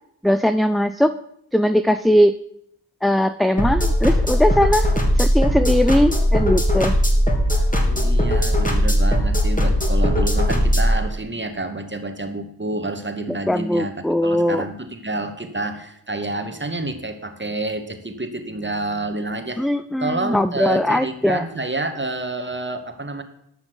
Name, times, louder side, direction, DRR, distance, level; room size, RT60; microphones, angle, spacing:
voice 1, 0.2-1.1 1.5-2.4 3.0-4.9 5.2-7.0 13.5-14.6 19.6-21.4, equal, ahead, 11 dB, 0.5 m, -19 dB
sound 1, 3.6-11.0, equal, 20° left, 3.4 m, -18 dB
voice 2, 7.9-19.7 20.0-23.2, right 2 dB, 25° right, 6 dB, 2.3 m, -29 dB
12.5 x 5.9 x 8.1 m, 0.75 s
supercardioid pair, 40°, 44 cm